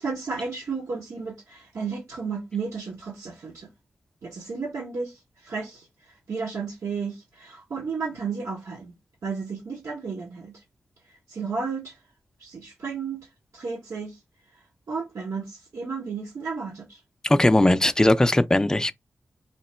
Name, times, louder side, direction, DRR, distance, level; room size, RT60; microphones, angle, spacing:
voice 1, 0.0-3.7 4.2-8.9 9.2-10.6 11.1-12.0 12.4-13.3 13.5-14.2 14.5-17.0, right 5 dB, 75° right, 0.8 m, -33 dB
voice 2, 17.2-18.9, left 1 dB, 15° left, 0.4 m, -19 dB
3.0 x 2.9 x 4.2 m
wide cardioid pair, 85°, 5 cm